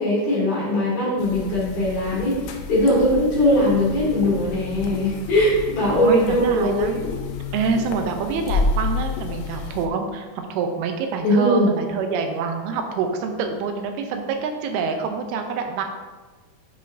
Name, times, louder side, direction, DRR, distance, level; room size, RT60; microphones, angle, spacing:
voice 1, 0.0-2.4 2.7-7.1 11.2-11.7, left 1 dB, 55° left, -7 dB, 2.9 m, -20 dB
sound 1, 1.2-9.9, left 3 dB, 90° left, 1.8 m, -30 dB
voice 2, 5.9-7.1 7.5-15.8, right 5 dB, 90° right, 5 dB, 2.6 m, -26 dB
7.9 x 5.2 x 2.7 m, 1.3 s
omnidirectional pair, 4.4 m